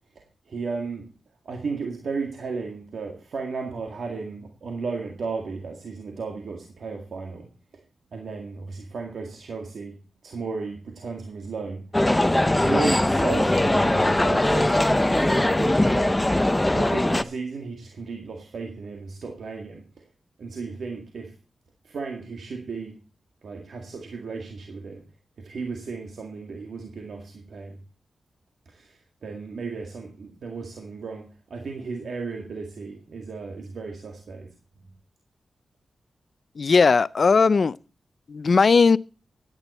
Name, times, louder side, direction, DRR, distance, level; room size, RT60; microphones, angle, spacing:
voice 1, 0.2-1.1 1.4-7.5 8.1-10.0 10.2-11.9 12.6-16.2 16.7-20.1 20.4-21.3 21.8-23.0 23.4-25.0 25.4-27.8 28.7-34.5, right 4 dB, 75° right, 2.0 m, -34 dB
sound 1, 11.9-17.2, left 1 dB, 15° left, 0.8 m, -21 dB
voice 2, 36.6-37.8 38.3-39.0, left 4 dB, 60° left, 0.5 m, -18 dB
13.5 x 9.9 x 4.2 m
cardioid pair, 70°, 0 cm